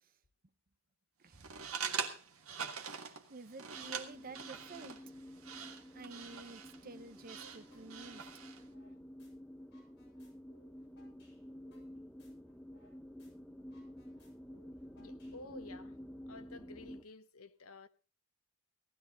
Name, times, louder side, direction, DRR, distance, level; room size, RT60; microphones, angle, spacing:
sound 1, 1.3-8.7, right 6 dB, 70° right, 1.9 m, -44 dB
voice 1, 3.3-5.0 5.9-8.2, right 3 dB, 40° right, 0.8 m, -50 dB
sound 2, 3.7-17.0, equal, 5° left, 0.7 m, -51 dB
sound 3, 7.7-7.9 8.2-9.3 9.6-12.9 13.2-13.3 13.6-15.7, left 2 dB, 50° left, 7.8 m, -68 dB
voice 2, 14.9-16.0 16.3-17.9, left 2 dB, 80° left, 1.1 m, -52 dB
18.0 x 13.5 x 3.8 m
head